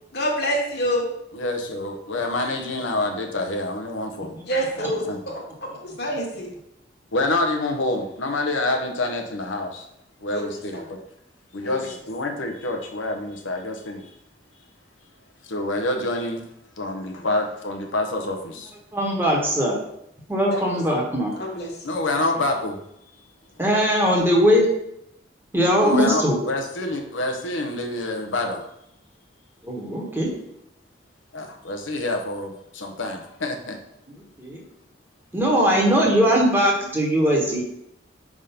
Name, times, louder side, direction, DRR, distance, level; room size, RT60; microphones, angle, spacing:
voice 1, 0.1-1.1 2.1-2.2 4.5-6.5 10.3-10.4 10.7-10.8 11.6-11.7 20.5-20.6 21.4-22.0, equal, 55° left, -1 dB, 1.5 m, -27 dB
voice 2, 1.3-4.4 4.8-5.2 7.1-9.8 10.2-11.0 11.5-14.1 15.4-16.4 16.8-18.7 21.8-22.8 25.8-28.6 31.3-33.8 36.8-37.0, left 2 dB, 90° left, 3 dB, 0.8 m, -27 dB
voice 3, 18.9-19.8 20.3-21.3 23.6-24.7 25.5-26.4 29.6-30.3 34.4-34.6 35.3-37.6, equal, 10° right, -2 dB, 1.1 m, -20 dB
5.1 x 3.6 x 5.6 m, 0.79 s
head